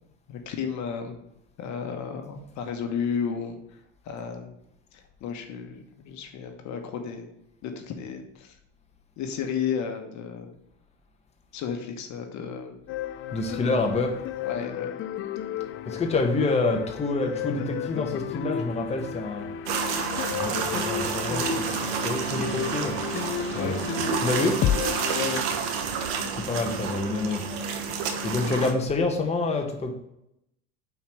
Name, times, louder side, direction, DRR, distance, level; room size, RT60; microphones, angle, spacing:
voice 1, 0.3-1.2 1.6-3.6 4.0-4.5 4.9-7.3 7.6-8.6 9.2-10.6 11.5-12.8 14.4-14.9 23.6-23.9 25.1-25.5, left 6 dB, 50° left, 5 dB, 1.3 m, -33 dB
sound 1, 12.9-25.4, left 9 dB, 35° left, 0.4 m, -32 dB
voice 2, 13.3-14.3 15.9-19.5 20.3-23.0 23.4-23.8 24.2-24.7 26.3-27.5 28.2-29.9, left 3 dB, 20° left, 2 dB, 1.2 m, -27 dB
sound 2, 19.7-28.7, right 6 dB, 70° right, 1.3 m, -30 dB
5.7 x 4.5 x 6.2 m, 0.82 s
hypercardioid pair, 90°, 35 cm